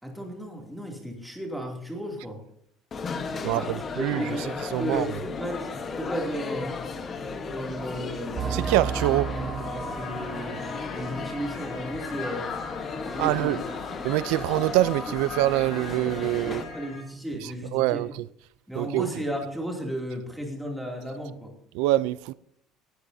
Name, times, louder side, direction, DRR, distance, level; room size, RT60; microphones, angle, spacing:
voice 1, 0.0-2.4 3.4-6.7 7.5-8.6 10.0-10.5 10.9-12.5 13.0-13.6 16.4-18.0 18.7-21.5, equal, ahead, 2.7 m, -34 dB
sound 1, 2.9-16.6, left 4 dB, 25° left, 1.2 m, -35 dB
voice 2, 3.4-4.4 4.7-5.1 8.5-9.3 13.2-13.6 14.0-16.6 17.4-18.3 18.8-19.1 21.7-22.3, right 16 dB, 85° right, 0.4 m, -25 dB
sound 2, 8.4-12.6 13.0-13.1 13.6-13.7, right 6 dB, 25° right, 0.6 m, -35 dB
sound 3, 8.6-17.0, left 5 dB, 45° left, 4.7 m, -40 dB
19.0 x 13.5 x 2.7 m
cardioid pair, 175°, 0 cm